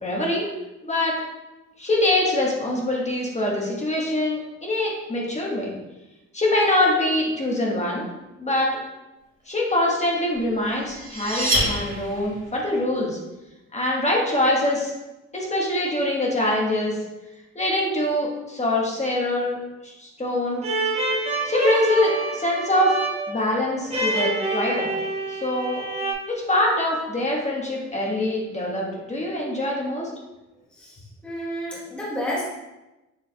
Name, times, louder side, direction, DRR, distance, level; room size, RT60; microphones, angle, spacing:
voice 1, 0.0-0.4 0.8-1.2 1.8-5.7 6.3-8.1 8.4-8.7 9.5-13.2 13.7-14.9 15.3-17.0 17.5-19.6 19.8-20.6 21.4-23.0 23.3-24.9 25.3-25.8 26.3-30.1, left 1 dB, 20° left, -3 dB, 1.2 m, -24 dB
sound 1, 10.4-12.5, equal, 55° right, 1.5 m, -26 dB
sound 2, 20.6-26.1, right 2 dB, 20° right, 1.0 m, -27 dB
voice 2, 31.2-32.5, equal, 5° left, -6 dB, 1.1 m, -30 dB
6.5 x 3.4 x 2.2 m, 1.0 s
cardioid pair, 90°, 30 cm